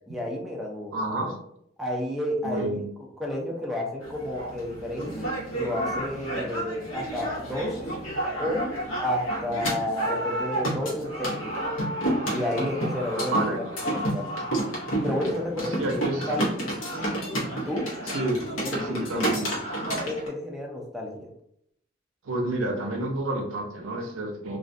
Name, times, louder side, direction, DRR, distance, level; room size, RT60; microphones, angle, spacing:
voice 1, 0.1-0.9 1.8-2.8 3.2-8.0 8.4-8.7 9.0-11.7 12.3-14.3 15.0-15.9 16.3-16.7 17.5-17.9 18.6-19.4 19.9-21.3, left 1 dB, ahead, -2 dB, 0.4 m, -31 dB
voice 2, 0.9-1.3 2.4-2.8 13.3-13.6 15.8-16.3 18.1-18.4 18.9-19.6 22.2-24.6, right 1 dB, 80° right, 2 dB, 0.5 m, -29 dB
sound 1, 4.0-20.3, right 1 dB, 85° left, 0.8 m, -30 dB
2.4 x 2.1 x 2.5 m, 0.73 s
head